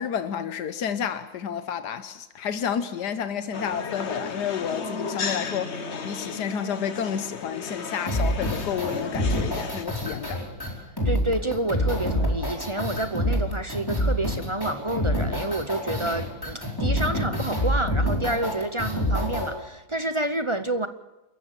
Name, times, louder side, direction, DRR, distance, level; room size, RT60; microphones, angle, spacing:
voice 1, 0.0-10.4, left 8 dB, 90° left, 1.6 m, -30 dB
sound 1, 3.5-9.9, left 4 dB, 45° left, 1.5 m, -34 dB
sound 2, 8.1-19.5, equal, 15° left, 4.5 m, -26 dB
voice 2, 11.0-20.9, right 1 dB, 30° right, 0.6 m, -29 dB
28.0 x 15.0 x 7.3 m
omnidirectional pair, 1.7 m